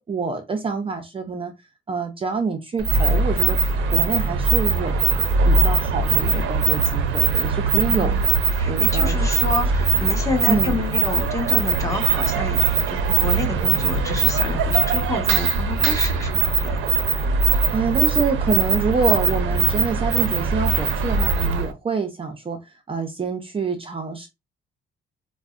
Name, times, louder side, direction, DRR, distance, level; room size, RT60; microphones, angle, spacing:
voice 1, 0.0-1.5 1.9-3.6 3.9-5.1 5.5-8.3 8.7-9.1 10.5-10.8 17.7-24.3, right 4 dB, 25° right, 0.5 m, -26 dB
sound 1, 2.8-21.7, right 5 dB, 85° right, 0.5 m, -21 dB
voice 2, 7.9-8.2 8.5-16.8, left 2 dB, 15° left, 1.2 m, -29 dB
4.4 x 2.1 x 2.4 m
cardioid pair, 90°, 20 cm